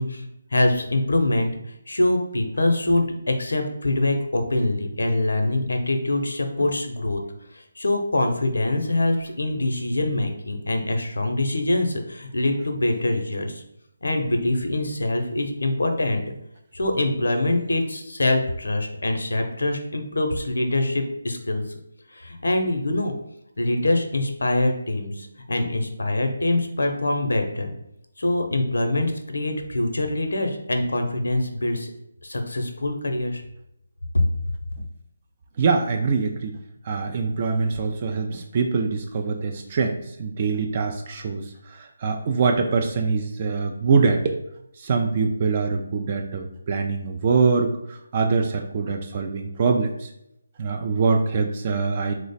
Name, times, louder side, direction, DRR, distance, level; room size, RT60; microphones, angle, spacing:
voice 1, 0.0-1.5 1.9-7.2 7.5-13.6 14.0-16.2 16.7-21.6 22.1-23.1 23.6-27.7 28.2-31.9 32.2-33.4 34.1-34.2, left 1 dB, 80° left, 5 dB, 0.5 m, -24 dB
voice 2, 35.6-36.6 36.8-44.4 44.8-50.1 50.6-52.1, right 4 dB, 35° right, 3 dB, 0.3 m, -24 dB
3.1 x 2.0 x 4.0 m, 0.81 s
figure-of-eight pair, 160°, 0 cm